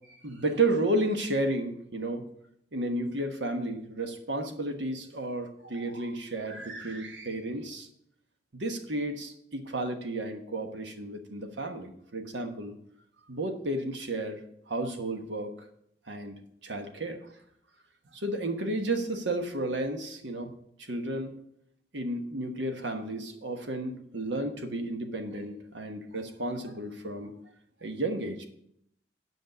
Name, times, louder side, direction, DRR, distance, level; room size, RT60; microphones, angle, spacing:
voice 1, 0.1-2.2 2.7-7.9 8.5-12.7 13.3-14.4 14.7-15.5 16.1-17.2 18.1-20.5 20.9-21.3 21.9-27.3 27.8-28.4, right 2 dB, 80° right, 6 dB, 1.3 m, -32 dB
8.1 x 5.6 x 7.9 m, 0.74 s
head